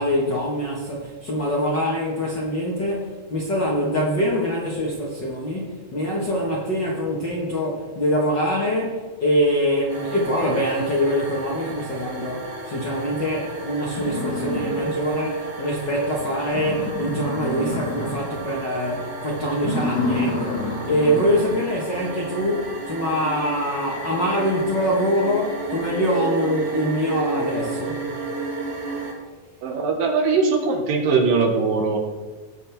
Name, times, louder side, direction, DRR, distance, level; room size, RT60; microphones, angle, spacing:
voice 1, 0.0-28.0, equal, 50° left, 1.4 m, -24 dB
sound 1, 9.9-29.1, right 3 dB, 55° right, 2.1 m, -32 dB
sound 2, 13.4-13.5 13.9-15.3 15.7-15.8 16.1-16.2 16.4-18.4 18.7-19.0 19.5-21.5, left 2 dB, 80° left, 3.2 m, -29 dB
voice 2, 29.6-32.0, right 4 dB, 80° right, 3.0 m, -21 dB
17.5 x 6.5 x 3.5 m
omnidirectional pair, 3.9 m